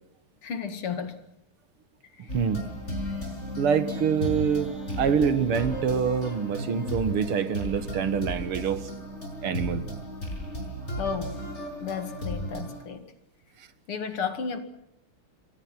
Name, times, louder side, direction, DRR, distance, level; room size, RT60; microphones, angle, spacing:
voice 1, 0.4-1.3 2.1-2.3 11.0-11.5 11.8-13.1 13.9-14.6, left 6 dB, 75° left, 3.0 m, -33 dB
sound 1, 2.3-12.8, equal, 30° left, 6.2 m, -34 dB
voice 2, 3.6-4.7 5.0-8.9 9.4-9.8, right 7 dB, 80° right, 2.4 m, -25 dB
28.5 x 23.0 x 6.0 m
omnidirectional pair, 2.4 m